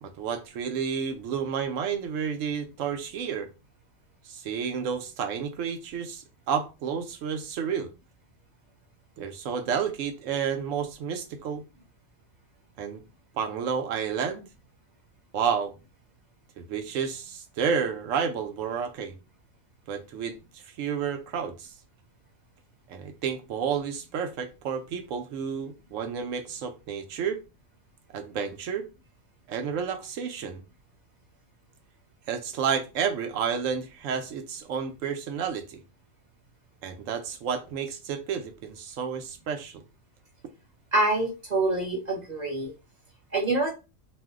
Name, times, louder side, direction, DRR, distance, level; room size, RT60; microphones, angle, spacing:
voice 1, 0.0-3.5 4.2-7.9 9.2-11.6 12.8-13.0 13.3-14.5 15.3-15.7 16.6-19.1 19.9-21.7 22.9-27.4 28.1-28.9 29.5-30.6 32.3-35.8 36.8-39.8, right 7 dB, 75° right, 0.9 m, -31 dB
voice 2, 40.9-42.7 43.3-43.7, right 2 dB, 35° right, 1.0 m, -26 dB
2.5 x 2.1 x 3.5 m
omnidirectional pair, 1.4 m